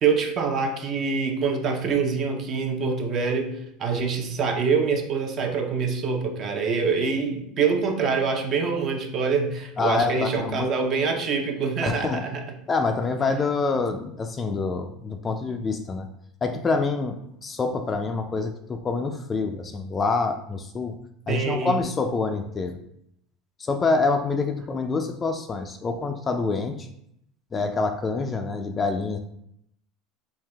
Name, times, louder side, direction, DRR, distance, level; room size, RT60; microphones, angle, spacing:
voice 1, 0.0-12.4 21.3-21.8, right 5 dB, 40° right, 4 dB, 0.6 m, -25 dB
voice 2, 9.8-10.7 11.8-12.2 12.7-16.1 16.4-21.0 21.3-22.8 23.6-26.9 27.5-29.2, left 4 dB, 20° left, 6 dB, 0.3 m, -26 dB
3.6 x 2.7 x 3.3 m, 0.73 s
supercardioid pair, 135°, 0 cm